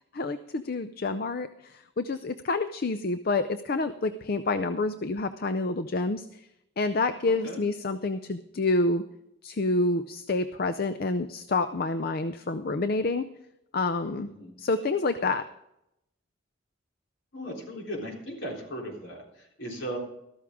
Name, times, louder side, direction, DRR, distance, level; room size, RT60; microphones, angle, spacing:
voice 1, 0.1-6.5 6.8-9.0 9.4-13.2 13.7-14.3 14.6-15.4, left 3 dB, 50° left, 10 dB, 0.5 m, -28 dB
voice 2, 7.2-7.6 14.2-14.5 17.3-20.0, equal, 70° left, 0 dB, 3.7 m, -37 dB
13.5 x 13.5 x 3.6 m, 0.82 s
head